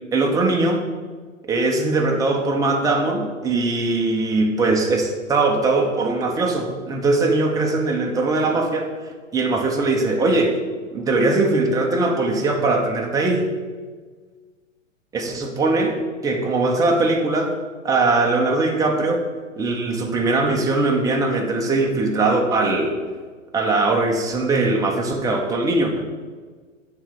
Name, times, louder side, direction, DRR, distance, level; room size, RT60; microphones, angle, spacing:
voice 1, 0.1-0.8 1.5-8.9 9.3-10.6 10.9-13.5 15.1-16.0 16.2-17.6 17.8-19.2 19.6-23.0 23.5-26.2, right 2 dB, 10° right, 1 dB, 0.8 m, -20 dB
9.1 x 3.3 x 6.4 m, 1.5 s
figure-of-eight pair, 115°, 40 cm